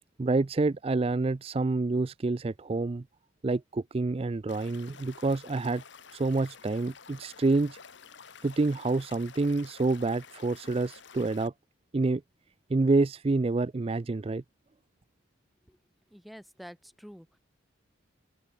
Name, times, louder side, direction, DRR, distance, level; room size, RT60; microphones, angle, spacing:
voice 1, 0.2-3.0 3.4-5.8 6.1-7.8 8.4-11.5 11.9-12.2 12.7-14.4, right 3 dB, 30° right, 0.4 m, -27 dB
Stream / Liquid, 4.5-11.5, left 6 dB, 60° left, 1.4 m, -51 dB
voice 2, 16.1-17.4, equal, ahead, 1.2 m, -48 dB
head